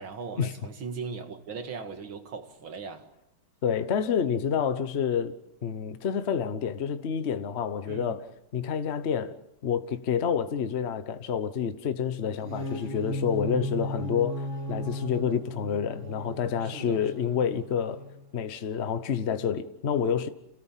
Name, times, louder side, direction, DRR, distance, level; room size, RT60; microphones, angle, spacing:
voice 1, 0.0-3.1 7.9-8.2 13.5-13.7 16.6-17.0, right 5 dB, 80° right, 2.6 m, -39 dB
voice 2, 3.6-8.3 8.5-18.0 18.3-20.3, left 7 dB, 45° left, 1.0 m, -28 dB
sound 1, 12.3-18.3, equal, 35° right, 3.2 m, -36 dB
28.5 x 18.0 x 7.4 m
omnidirectional pair, 2.2 m